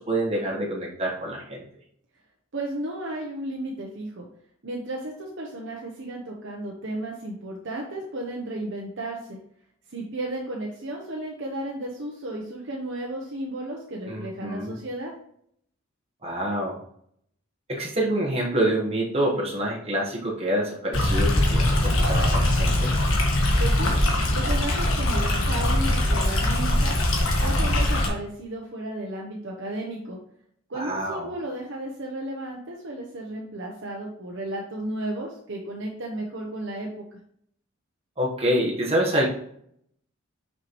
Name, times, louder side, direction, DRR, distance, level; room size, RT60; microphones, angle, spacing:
voice 1, 0.0-1.6 14.1-14.8 16.2-16.8 17.7-22.9 30.7-31.3 38.2-39.3, right 1 dB, 30° right, -4 dB, 1.3 m, -27 dB
voice 2, 2.5-4.3 4.6-9.4 9.9-15.1 23.6-23.9 24.3-27.0 27.4-30.2 30.7-37.0, right 1 dB, 60° right, -1 dB, 0.9 m, -34 dB
Stream, 20.9-28.1, left 1 dB, 75° left, 1.6 m, -22 dB
6.1 x 5.7 x 3.1 m, 0.67 s
head